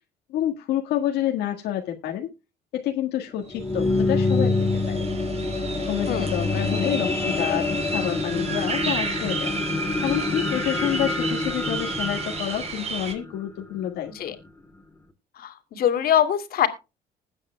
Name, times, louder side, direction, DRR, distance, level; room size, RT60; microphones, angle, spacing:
voice 1, 0.3-2.3 2.7-5.1 5.9-9.5 10.0-14.3, left 11 dB, 85° left, 1.7 m, -28 dB
sound 1, 3.3-13.9 14.5-14.6, left 3 dB, 15° left, 2.3 m, -27 dB
sound 2, 3.5-3.6 3.8-13.1, right 4 dB, 40° right, 3.6 m, -33 dB
voice 2, 15.4-16.7, left 10 dB, 65° left, 2.4 m, -23 dB
20.5 x 8.8 x 2.2 m
cardioid pair, 110°, 17 cm